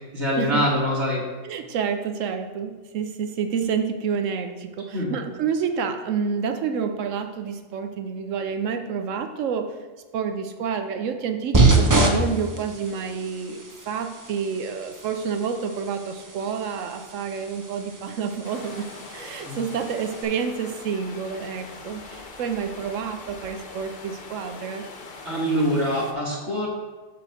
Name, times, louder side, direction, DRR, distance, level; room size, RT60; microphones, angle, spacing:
voice 1, 0.1-1.2 4.9-5.1 19.4-19.6 25.3-26.7, equal, 60° right, -4 dB, 2.2 m, -24 dB
voice 2, 1.4-9.8 10.1-24.9, right 6 dB, 80° right, 7 dB, 0.9 m, -29 dB
sound 1, 11.5-20.2, right 3 dB, 25° right, 0.4 m, -26 dB
sound 2, 18.4-26.1, left 3 dB, 50° left, 0.9 m, -42 dB
8.2 x 3.0 x 6.3 m, 1.3 s
omnidirectional pair, 1.3 m